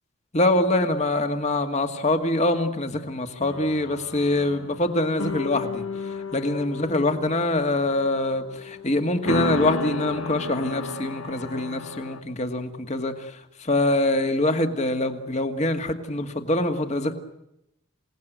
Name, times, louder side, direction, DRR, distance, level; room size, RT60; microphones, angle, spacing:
voice 1, 0.3-17.1, left 2 dB, 35° left, 7 dB, 2.0 m, -24 dB
sound 1, 3.4-12.2, left 3 dB, 90° left, 1.4 m, -33 dB
28.0 x 18.0 x 9.3 m, 0.83 s
head